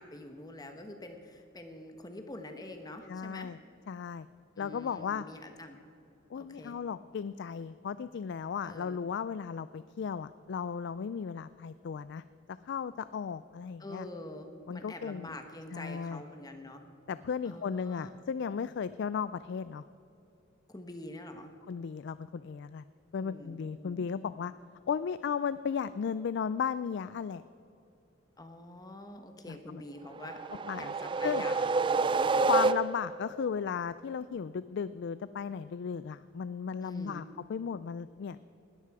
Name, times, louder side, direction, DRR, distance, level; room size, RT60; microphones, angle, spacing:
voice 1, 0.0-3.5 4.5-5.8 6.3-6.8 8.6-9.0 13.8-16.8 17.4-18.2 20.7-21.5 23.2-24.1 28.4-32.5 36.8-37.3, left 1 dB, 20° left, 6 dB, 1.1 m, -46 dB
voice 2, 3.1-3.6 3.9-4.3 4.6-5.2 6.3-12.2 12.7-14.1 14.7-15.4 15.7-16.2 17.1-19.8 21.7-22.8 23.1-24.5 24.9-27.4 29.5-29.8 30.7-30.9 31.2-31.4 32.5-37.2 37.5-38.4, left 6 dB, 60° left, 15 dB, 0.3 m, -35 dB
sound 1, 30.2-33.3, right 4 dB, 25° right, 0.3 m, -28 dB
19.5 x 13.5 x 4.8 m, 2.8 s
head